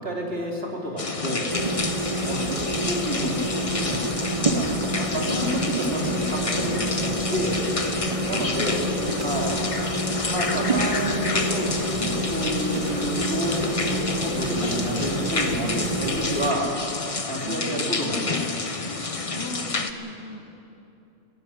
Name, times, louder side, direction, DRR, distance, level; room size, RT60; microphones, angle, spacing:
voice 1, 0.0-1.5 2.2-4.3 4.5-7.6 8.3-9.7 10.3-16.7 17.3-18.4, equal, 45° right, -1 dB, 3.6 m, -30 dB
sound 1, 1.0-19.9, left 3 dB, 30° left, 0.9 m, -29 dB
sound 2, 1.5-16.5, right 1 dB, 25° right, 0.9 m, -28 dB
voice 2, 2.2-2.7 8.3-9.6 11.0-11.9 17.4-18.2 19.3-20.5, left 1 dB, 50° left, 4 dB, 1.3 m, -40 dB
Mechanisms, 3.6-7.6 8.0-9.5 10.1-11.5 11.8-12.1 12.4-13.0, right 5 dB, 75° right, 1.6 m, -43 dB
20.5 x 15.5 x 10.0 m, 2.9 s
omnidirectional pair, 1.5 m